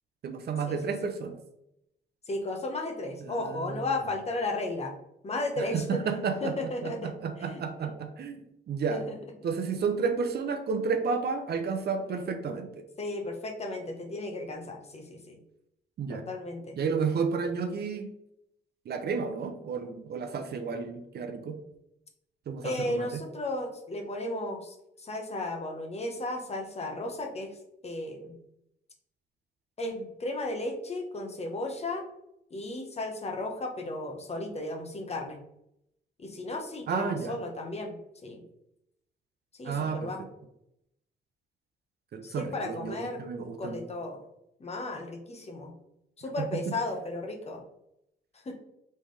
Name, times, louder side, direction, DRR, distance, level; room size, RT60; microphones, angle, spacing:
voice 1, 0.2-1.4 3.2-3.9 5.6-6.5 6.8-9.0 9.4-12.7 16.0-16.2 16.7-18.1 18.9-21.6 22.5-23.1 36.9-37.4 39.6-40.1 42.1-43.8 46.5-46.6, right 5 dB, 55° right, 6 dB, 0.7 m, -31 dB
voice 2, 2.3-4.9 5.2-6.0 6.4-7.1 7.4-7.9 8.9-9.2 13.0-15.4 16.1-16.8 22.6-27.6 27.8-28.4 29.8-32.0 32.5-35.4 36.2-37.9 38.2-38.4 39.6-40.2 42.2-43.2 43.6-44.2 44.6-45.7 46.2-47.6 48.4-48.5, left 2 dB, 30° left, 3 dB, 0.9 m, -34 dB
4.2 x 3.5 x 3.2 m, 0.80 s
cardioid pair, 90°, 20 cm